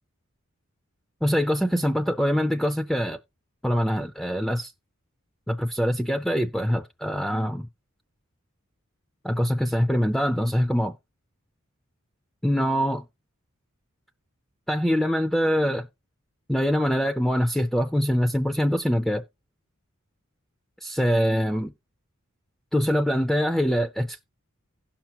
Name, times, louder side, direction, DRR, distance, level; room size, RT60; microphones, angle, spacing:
voice 1, 1.2-3.2 3.6-4.7 5.5-7.7 9.2-10.9 12.4-13.0 14.7-15.9 16.5-19.2 20.8-21.7 22.7-24.2, equal, ahead, 0.4 m, -24 dB
16.5 x 5.8 x 2.9 m
head